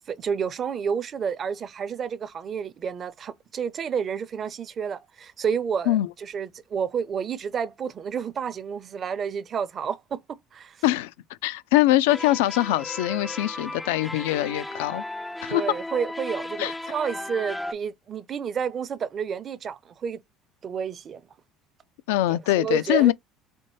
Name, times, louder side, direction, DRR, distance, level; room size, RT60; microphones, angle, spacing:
voice 1, 0.1-10.2 10.5-10.8 15.5-20.2 20.6-21.2 22.3-23.1, right 6 dB, 45° right, 0.6 m, -30 dB
voice 2, 11.4-15.0 15.4-15.6 16.6-16.7 22.1-23.1, left 15 dB, 85° left, 0.4 m, -22 dB
sound 1, 12.1-17.7, left 1 dB, 10° left, 0.4 m, -35 dB
4.3 x 2.2 x 3.1 m
supercardioid pair, 85°, 0 cm